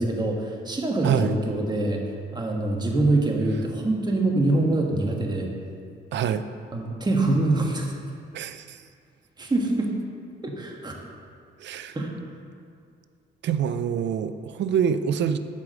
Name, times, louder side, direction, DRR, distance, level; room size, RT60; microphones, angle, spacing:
voice 1, 0.0-2.0 2.3-5.5 6.7-7.9 9.4-9.9 10.4-11.0 11.9-12.2, right 2 dB, 20° right, 0 dB, 1.4 m, -24 dB
voice 2, 1.0-1.3 6.1-6.4 8.3-8.8 11.6-11.9 13.4-15.4, right 8 dB, 65° right, 11 dB, 0.5 m, -25 dB
8.5 x 4.9 x 6.3 m, 2.3 s
cardioid pair, 90°, 20 cm